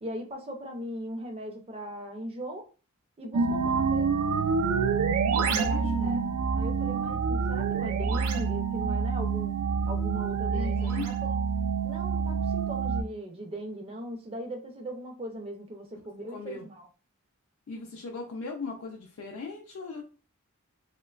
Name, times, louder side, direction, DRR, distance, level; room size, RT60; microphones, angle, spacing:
voice 1, 0.0-2.7 3.2-4.2 5.3-6.2 6.5-9.6 9.9-11.4 11.8-16.9, right 1 dB, 25° right, 1 dB, 0.5 m, -39 dB
sound 1, 3.3-13.0, right 5 dB, 85° right, 0.3 m, -27 dB
voice 2, 5.3-6.1 10.5-11.1 16.3-16.7 17.7-20.0, left 4 dB, 65° left, 0 dB, 0.4 m, -38 dB
2.9 x 2.1 x 2.3 m, 0.35 s
head